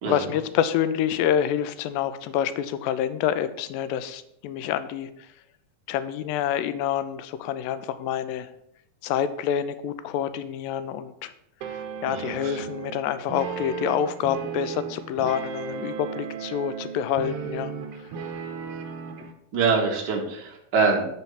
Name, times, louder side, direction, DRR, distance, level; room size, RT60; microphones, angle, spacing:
voice 1, 0.1-5.1 5.9-8.5 9.0-11.3 11.7-17.7, left 10 dB, 85° left, 13 dB, 2.3 m, -27 dB
sound 1, 11.6-19.3, right 6 dB, 70° right, 2.3 m, -35 dB
voice 2, 12.1-12.6 19.5-21.1, right 4 dB, 55° right, 0 dB, 1.2 m, -25 dB
9.7 x 4.4 x 5.6 m, 0.75 s
omnidirectional pair, 3.9 m